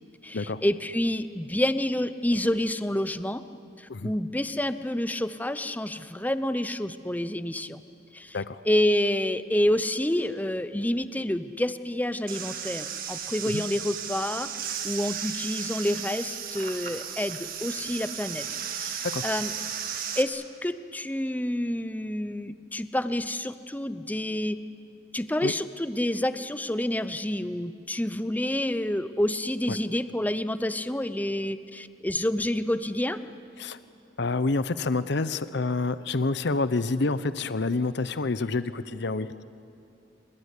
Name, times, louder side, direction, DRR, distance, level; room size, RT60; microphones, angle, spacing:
voice 1, 0.2-3.4 3.8-7.8 8.1-8.4 8.7-18.5 18.7-19.0 19.2-19.5 20.2-24.6 25.1-33.2, left 1 dB, 10° left, 12 dB, 0.7 m, -28 dB
sound 1, 12.3-20.2, right 8 dB, 50° right, 1.9 m, -35 dB
voice 2, 34.2-39.3, left 3 dB, 65° left, 14 dB, 0.8 m, -28 dB
24.5 x 20.5 x 10.0 m, 2.5 s
head